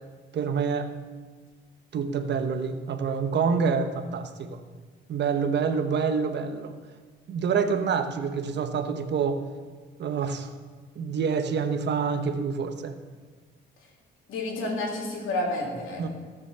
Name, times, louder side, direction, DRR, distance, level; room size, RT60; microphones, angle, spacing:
voice 1, 0.3-0.9 1.9-4.6 5.1-6.7 7.3-9.4 10.0-10.5 11.0-12.9 16.0-16.1, right 6 dB, 60° right, 8 dB, 1.1 m, -27 dB
voice 2, 14.3-16.1, left 2 dB, 85° left, -1 dB, 3.1 m, -30 dB
17.0 x 6.2 x 6.9 m, 1.5 s
cardioid pair, 90°, 20 cm